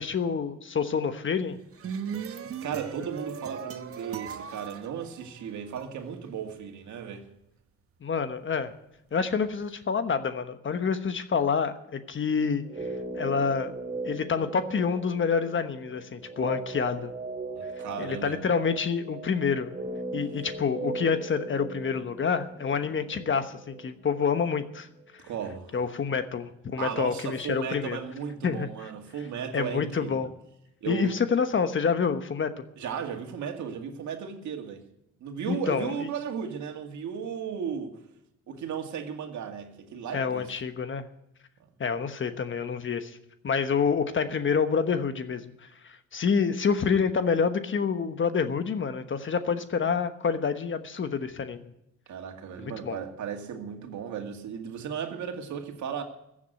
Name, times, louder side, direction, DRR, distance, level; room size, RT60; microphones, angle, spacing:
voice 1, 0.0-1.6 8.0-8.7 9.1-12.6 13.1-13.7 14.0-17.1 18.0-19.7 20.1-24.9 25.7-28.0 28.4-28.7 29.5-30.3 30.9-32.6 35.5-36.1 40.1-41.0 41.8-43.2 43.4-45.5 45.8-51.7 52.6-53.0, left 6 dB, 40° left, 1.2 m, -27 dB
sound 1, 1.5-5.8, right 7 dB, 50° right, 1.0 m, -38 dB
voice 2, 2.2-7.3 17.6-18.4 25.2-25.8 26.8-30.3 30.8-31.1 32.8-34.8 35.2-37.9 38.5-40.4 52.1-56.0, right 7 dB, 70° right, 2.2 m, -35 dB
sound 2, 12.6-24.8 25.0-25.1, right 2 dB, 25° right, 2.4 m, -38 dB
15.0 x 7.4 x 9.2 m
cardioid pair, 90°, 30 cm